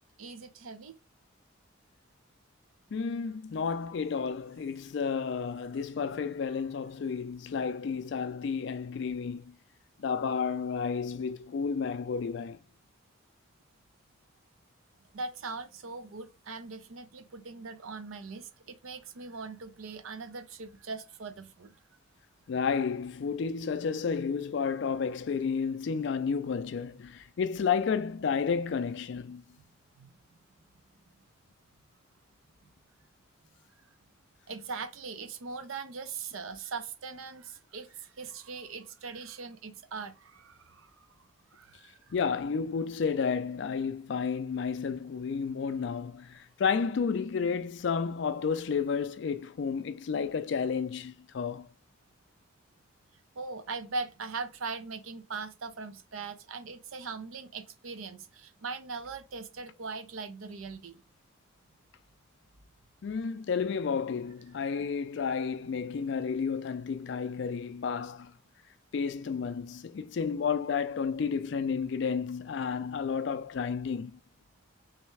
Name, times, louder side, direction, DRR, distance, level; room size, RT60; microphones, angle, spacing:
voice 1, 0.2-0.9 15.1-21.8 30.0-30.1 34.5-41.1 41.5-42.1 53.4-61.0, right 4 dB, 85° right, 0.6 m, -40 dB
voice 2, 2.9-9.6 10.0-12.6 22.5-29.4 42.1-51.7 63.0-68.3 68.9-74.2, left 6 dB, 60° left, 0.3 m, -31 dB
3.4 x 3.2 x 3.2 m
head